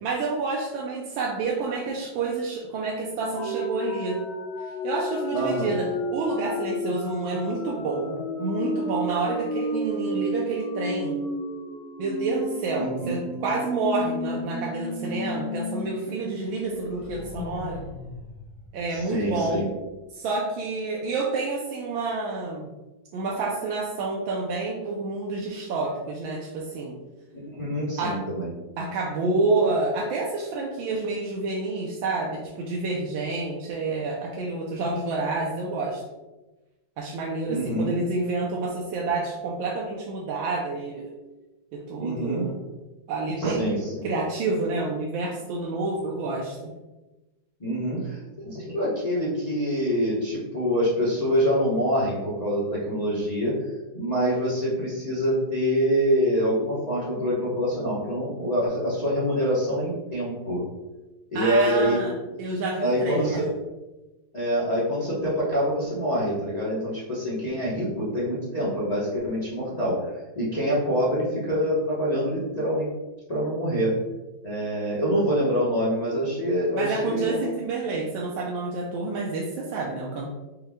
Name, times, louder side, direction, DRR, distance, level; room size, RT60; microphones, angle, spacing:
voice 1, 0.0-4.2 4.6-11.2 12.0-17.8 18.7-19.7 20.1-22.7 23.1-27.0 28.0-28.2 28.8-36.0 37.0-41.1 41.7-42.5 43.1-43.7 44.0-46.7 61.3-62.1 62.4-63.4 76.8-80.3, right 3 dB, 90° right, -3 dB, 1.4 m, -29 dB
sound 1, 3.3-15.8 16.2-16.3 16.6-19.3, left 1 dB, 90° left, 1.5 m, -32 dB
voice 2, 5.3-5.7 12.7-13.1 18.9-19.6 27.3-28.5 37.5-38.0 42.0-42.4 43.4-44.1 47.6-53.5 53.9-60.6 61.3-62.0 62.3-62.4 62.8-63.4 64.3-69.9 70.3-72.9 73.3-73.9 74.4-77.4, equal, 35° left, -9 dB, 0.7 m, -25 dB
5.3 x 2.2 x 3.4 m, 1.1 s
omnidirectional pair, 2.1 m